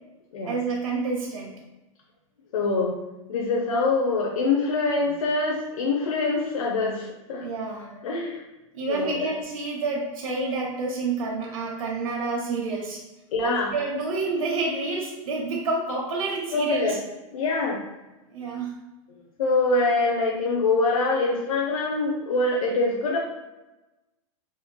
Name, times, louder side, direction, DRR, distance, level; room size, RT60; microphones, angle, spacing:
voice 1, 0.4-1.6 7.4-8.0 8.7-13.0 13.4-17.0 18.3-18.7, right 3 dB, 80° right, -2 dB, 0.9 m, -29 dB
voice 2, 2.5-3.0 3.3-7.5 8.0-8.4 8.9-9.3 10.0-10.1 13.3-13.7 16.5-17.0 17.3-17.8 19.4-23.2, left 3 dB, 80° left, -2 dB, 0.7 m, -24 dB
4.9 x 2.6 x 2.2 m, 1.0 s
hypercardioid pair, 140°, 17 cm